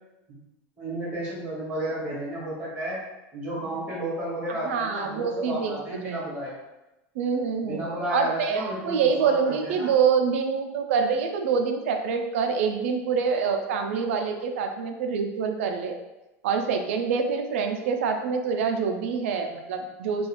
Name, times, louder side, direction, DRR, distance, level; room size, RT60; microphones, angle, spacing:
voice 1, 0.8-3.1 3.3-6.6 7.6-9.9, right 1 dB, 15° right, -6 dB, 0.9 m, -32 dB
voice 2, 4.5-6.2 7.2-16.0 16.4-20.3, right 6 dB, 90° right, 5 dB, 0.4 m, -26 dB
2.4 x 2.3 x 2.9 m, 1.0 s
supercardioid pair, 165°, 7 cm